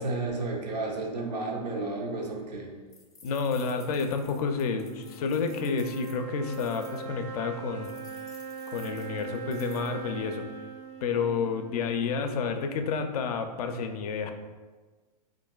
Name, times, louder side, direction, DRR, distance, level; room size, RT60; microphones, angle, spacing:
voice 1, 0.0-2.7, right 2 dB, 80° right, 1 dB, 0.7 m, -32 dB
sound 1, 2.9-7.0 7.8-9.9, left 4 dB, 15° left, 0.5 m, -54 dB
voice 2, 3.2-7.9 8.7-10.5 11.0-14.3, left 5 dB, 65° left, 6 dB, 0.4 m, -30 dB
sound 2, 3.6-13.1, right 5 dB, 30° right, 0.4 m, -42 dB
3.8 x 2.5 x 2.3 m, 1.3 s
hypercardioid pair, 135°, 20 cm